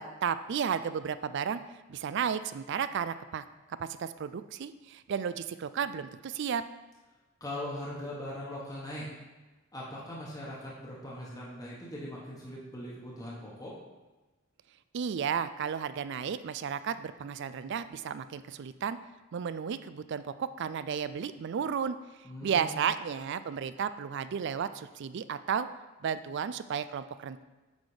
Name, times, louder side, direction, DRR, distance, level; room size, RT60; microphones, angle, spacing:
voice 1, 0.0-1.6 1.9-3.4 3.8-6.6 14.9-19.0 19.3-22.0 22.4-25.7 26.0-27.4, right 7 dB, 55° right, 13 dB, 0.3 m, -33 dB
voice 2, 7.4-9.1 9.7-13.8 22.2-22.8, left 1 dB, 15° left, -6 dB, 1.2 m, -40 dB
8.5 x 4.1 x 4.9 m, 1.1 s
head